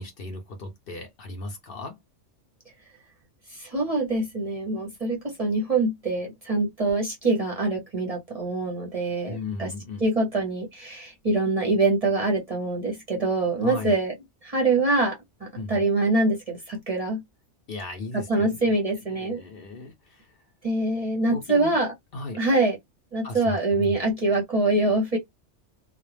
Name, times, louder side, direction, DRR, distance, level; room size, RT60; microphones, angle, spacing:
voice 1, 0.0-2.0 9.3-10.1 13.6-14.0 15.6-15.8 17.7-18.8 19.1-20.3 21.3-21.7 22.1-22.4 23.2-23.9, left 2 dB, 55° left, 0.7 m, -36 dB
voice 2, 3.5-9.7 10.0-14.1 14.4-15.2 15.4-17.2 18.1-19.4 20.6-21.9 22.4-22.8 23.1-25.2, right 2 dB, 40° right, 0.7 m, -24 dB
2.3 x 2.1 x 3.2 m
omnidirectional pair, 1.3 m